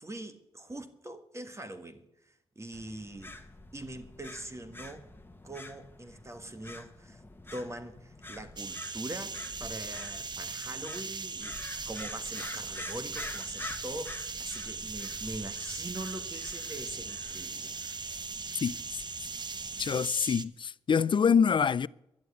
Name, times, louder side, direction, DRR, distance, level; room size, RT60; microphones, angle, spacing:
voice 1, 0.0-2.0 2.5-3.3 3.7-5.1 5.4-7.2 7.5-11.5 11.8-17.9, right 1 dB, 25° right, 1.7 m, -42 dB
sound 1, 2.7-20.0, left 2 dB, 20° left, 1.5 m, -47 dB
sound 2, 8.6-20.4, right 4 dB, 40° right, 0.9 m, -39 dB
voice 2, 18.6-19.0 19.8-21.9, left 6 dB, 45° left, 0.5 m, -26 dB
11.5 x 11.0 x 8.2 m
cardioid pair, 60°, 11 cm